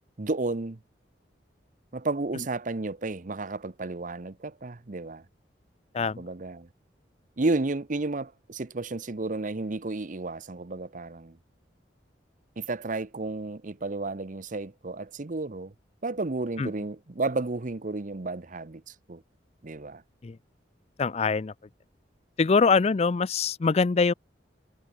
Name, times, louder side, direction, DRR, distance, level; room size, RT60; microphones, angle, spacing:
voice 1, 0.2-0.8 1.9-5.2 6.2-6.7 7.4-11.4 12.6-15.7 16.0-19.2 19.6-20.0, right 2 dB, 45° right, 0.8 m, -32 dB
voice 2, 21.0-21.5 22.4-24.1, left 4 dB, 35° left, 0.4 m, -23 dB
head